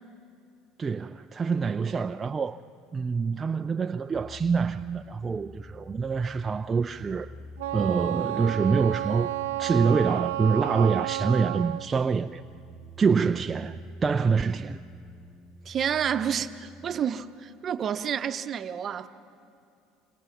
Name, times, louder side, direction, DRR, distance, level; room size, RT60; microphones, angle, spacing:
voice 1, 0.8-2.6 2.9-7.3 7.7-9.3 9.6-12.4 13.0-14.8, right 5 dB, 30° right, 0.5 m, -26 dB
sound 1, 4.1-17.1, right 1 dB, 25° left, 4.1 m, -48 dB
Wind instrument woodwind instrument, 7.6-11.9, right 14 dB, 85° right, 0.5 m, -31 dB
voice 2, 15.6-19.1, right 8 dB, 45° right, 0.9 m, -29 dB
28.0 x 26.0 x 5.9 m
supercardioid pair, 85°, 0 cm